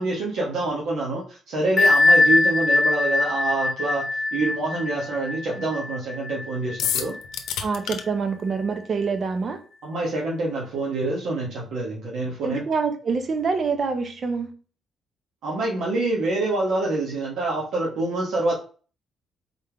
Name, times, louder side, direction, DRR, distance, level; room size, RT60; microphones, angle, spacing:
voice 1, 0.0-7.1 9.8-12.6 15.4-18.5, right 2 dB, 80° right, 1.3 m, -26 dB
Bell, 1.8-7.2, left 2 dB, 30° left, 0.8 m, -21 dB
sound 1, 6.8-8.0, left 8 dB, 85° left, 0.7 m, -27 dB
voice 2, 7.6-9.6 12.4-14.5, right 5 dB, 45° right, 0.9 m, -26 dB
4.2 x 3.6 x 3.4 m
cardioid pair, 90°, 0 cm